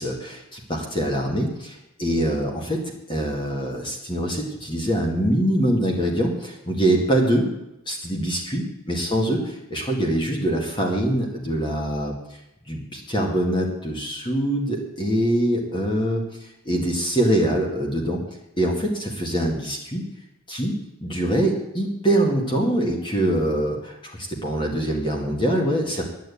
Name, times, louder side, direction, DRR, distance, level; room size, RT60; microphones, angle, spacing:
voice 1, 0.0-7.5 7.9-12.1 12.7-18.2 18.6-20.0 20.5-20.7 21.0-26.0, right 1 dB, 20° left, 0 dB, 1.9 m, -24 dB
10.5 x 9.3 x 8.4 m, 0.89 s
head